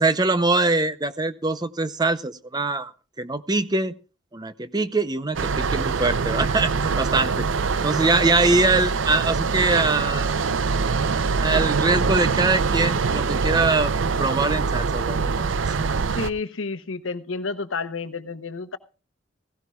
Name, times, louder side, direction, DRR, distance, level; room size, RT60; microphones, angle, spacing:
voice 1, 0.0-2.9 3.2-3.9 4.3-7.3 7.8-10.4 11.4-13.9 14.2-15.9, right 3 dB, 20° right, 0.7 m, -23 dB
sound 1, 5.3-16.3, right 5 dB, 70° right, 0.5 m, -24 dB
voice 2, 16.1-18.8, left 4 dB, 75° left, 0.9 m, -30 dB
17.0 x 16.5 x 2.4 m
head